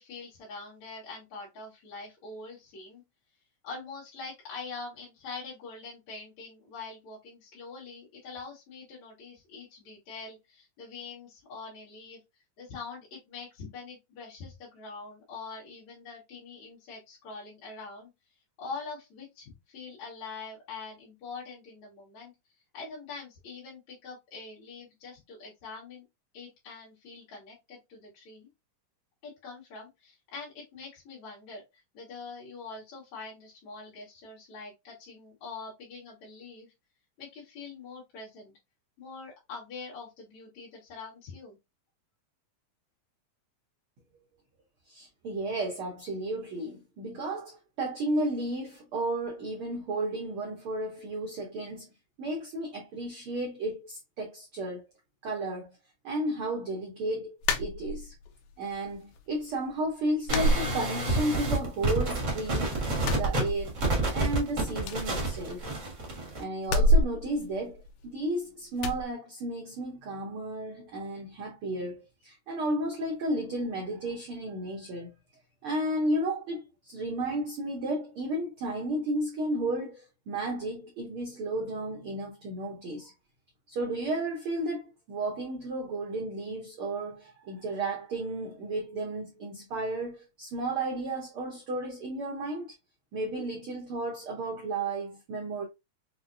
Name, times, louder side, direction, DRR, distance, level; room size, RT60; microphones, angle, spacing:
voice 1, 0.0-3.0 3.6-12.2 12.6-18.1 18.6-22.3 22.7-26.0 26.3-28.5 29.2-36.7 37.2-38.5 39.0-41.6, left 4 dB, 65° left, 2.4 m, -44 dB
voice 2, 44.9-51.9 52.2-54.8 55.2-55.8 56.0-58.1 58.6-62.7 63.1-63.8 64.1-65.8 66.4-75.1 75.6-83.1 83.7-92.7 93.1-95.6, right 1 dB, 90° right, 1.2 m, -33 dB
sound 1, 57.4-58.3 58.7-59.4 59.7-59.8 60.3-61.4 61.7-62.5 62.9-64.1 64.3-64.4 64.8-65.9 66.6-68.3 68.8-69.1, equal, 80° left, 2.1 m, -28 dB
sound 2, 60.3-66.4, right 2 dB, 65° right, 0.7 m, -29 dB
5.6 x 2.1 x 2.5 m
omnidirectional pair, 3.7 m